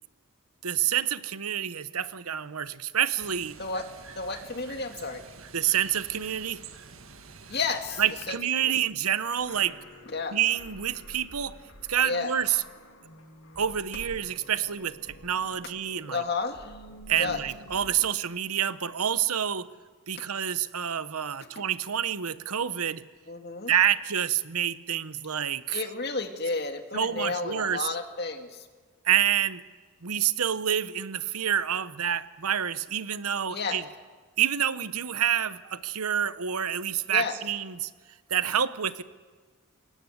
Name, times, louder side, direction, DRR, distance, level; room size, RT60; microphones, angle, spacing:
voice 1, 0.6-3.6 5.5-6.6 8.0-9.8 10.3-11.6 11.9-12.6 13.6-16.2 17.1-19.7 20.1-23.0 23.7-25.8 26.9-27.9 29.0-29.6 30.0-33.8 34.4-37.9 38.3-39.0, right 9 dB, 90° right, 14 dB, 1.0 m, -28 dB
sound 1, 3.2-8.4, right 5 dB, 70° right, 1.8 m, -47 dB
voice 2, 4.2-5.2 7.5-8.8 10.1-10.4 12.0-12.3 16.1-16.7 17.2-17.4 23.3-23.7 25.7-28.7 33.5-33.8 37.1-37.4, left 4 dB, 45° left, 6 dB, 2.1 m, -32 dB
sound 2, 9.4-18.1, equal, 70° left, 3.1 m, -49 dB
28.0 x 18.5 x 8.0 m, 1.4 s
head